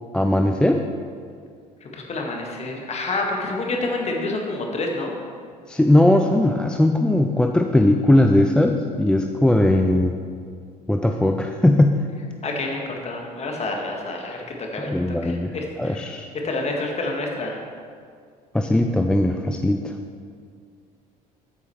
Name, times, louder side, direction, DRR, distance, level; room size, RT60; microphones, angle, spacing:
voice 1, 0.1-0.8 5.7-10.1 10.9-12.0 14.8-15.5 15.8-16.3 18.5-19.9, left 1 dB, 5° left, 4 dB, 0.4 m, -19 dB
voice 2, 1.8-5.1 12.4-14.9 15.2-16.0 16.4-17.6, left 2 dB, 30° left, 1 dB, 1.7 m, -28 dB
13.0 x 8.1 x 3.2 m, 2.2 s
figure-of-eight pair, 60°, 21 cm